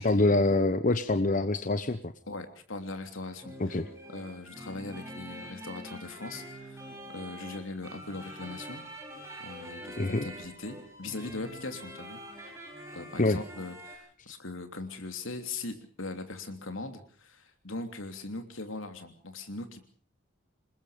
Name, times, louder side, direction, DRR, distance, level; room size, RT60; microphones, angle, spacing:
voice 1, 0.0-2.0 3.6-3.9 10.0-10.3 13.2-13.4, left 2 dB, 40° left, 10 dB, 1.0 m, -25 dB
voice 2, 2.3-3.8 4.1-8.8 9.4-12.2 12.9-19.8, left 3 dB, 75° left, 7 dB, 3.1 m, -40 dB
sound 1, 3.4-14.0, equal, 15° right, 6.1 m, -45 dB
27.0 x 21.0 x 5.1 m, 0.42 s
head